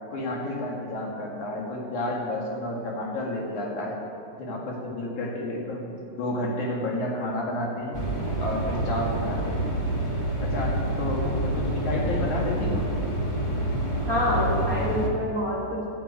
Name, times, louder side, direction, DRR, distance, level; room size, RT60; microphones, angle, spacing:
voice 1, 0.1-4.0 4.4-8.0 8.4-9.6 10.4-12.9, left 1 dB, 75° left, -2 dB, 3.5 m, -30 dB
sound 1, 7.9-15.1, right 1 dB, 25° left, 0.6 m, -28 dB
voice 2, 14.0-15.9, equal, 35° right, -5 dB, 1.9 m, -27 dB
11.5 x 9.1 x 8.5 m, 2.5 s
omnidirectional pair, 3.5 m